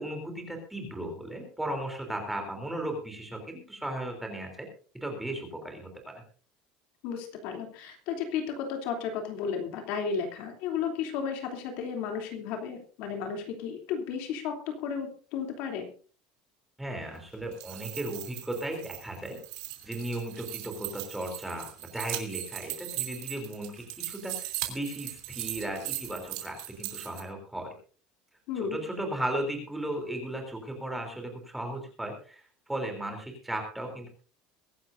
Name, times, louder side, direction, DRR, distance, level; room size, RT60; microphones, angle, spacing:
voice 1, 0.0-4.7 4.9-6.1 16.8-19.4 19.8-27.7 28.6-32.4 32.7-34.1, right 1 dB, 5° right, 3 dB, 3.3 m, -36 dB
voice 2, 7.0-15.9 28.5-28.9, left 6 dB, 55° left, 3 dB, 3.0 m, -33 dB
sound 1, 17.4-27.2, right 15 dB, 85° right, 3.1 m, -39 dB
23.0 x 11.5 x 2.6 m, 0.40 s
cardioid pair, 175°, 3 cm